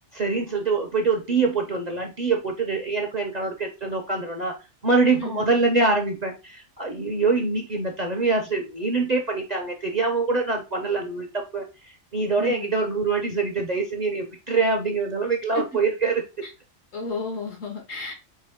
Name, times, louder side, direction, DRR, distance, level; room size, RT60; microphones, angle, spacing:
voice 1, 0.1-4.5 4.8-11.7 12.1-16.2, right 3 dB, 40° right, 2 dB, 0.6 m, -24 dB
voice 2, 12.4-12.7 15.6-15.7 16.9-18.1, left 3 dB, 75° left, 0 dB, 1.9 m, -32 dB
4.5 x 3.0 x 3.4 m, 0.28 s
omnidirectional pair, 1.4 m